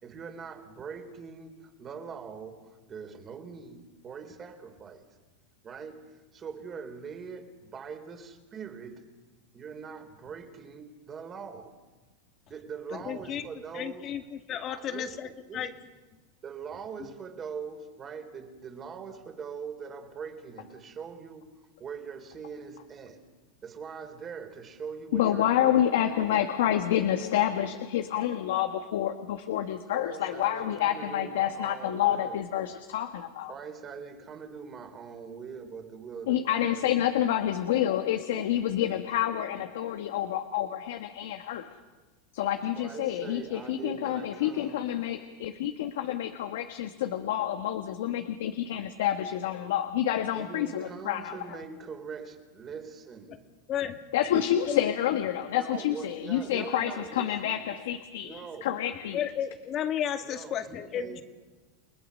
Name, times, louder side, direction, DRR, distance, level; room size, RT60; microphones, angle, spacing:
voice 1, 0.0-5.0 5.6-9.1 9.5-11.7 12.5-14.1 14.7-15.7 16.4-21.5 21.8-23.2 23.6-26.4 29.9-32.4 33.5-36.9 42.8-44.9 50.3-53.4 55.5-57.7 58.2-58.7 60.2-61.2, right 6 dB, 30° right, 3.8 m, -42 dB
voice 2, 12.9-13.5 13.7-15.7 51.7-51.8 53.3-53.4 53.7-54.0 54.7-54.8 59.1-61.2, left 9 dB, 40° left, 2.1 m, -33 dB
voice 3, 25.1-33.5 36.3-41.7 42.3-51.6 54.1-59.3, left 11 dB, 80° left, 1.4 m, -28 dB
30.0 x 20.0 x 6.5 m
supercardioid pair, 120°, 0 cm